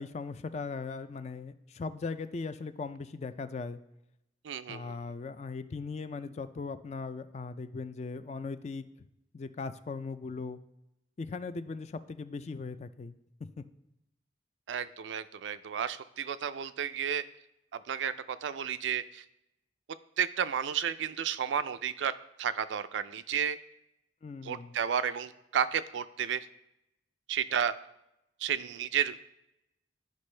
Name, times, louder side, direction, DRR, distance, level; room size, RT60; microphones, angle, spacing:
voice 1, 0.0-3.8 4.7-8.8 9.3-10.6 11.2-13.1 13.4-13.6 24.2-24.7, left 4 dB, 35° left, 12 dB, 0.3 m, -39 dB
voice 2, 4.4-4.9 14.7-17.2 17.7-19.2 20.2-22.1 22.4-23.6 24.4-26.5 27.3-27.7 28.4-29.2, right 8 dB, 85° right, 12 dB, 0.4 m, -32 dB
11.5 x 5.2 x 3.2 m, 0.86 s
head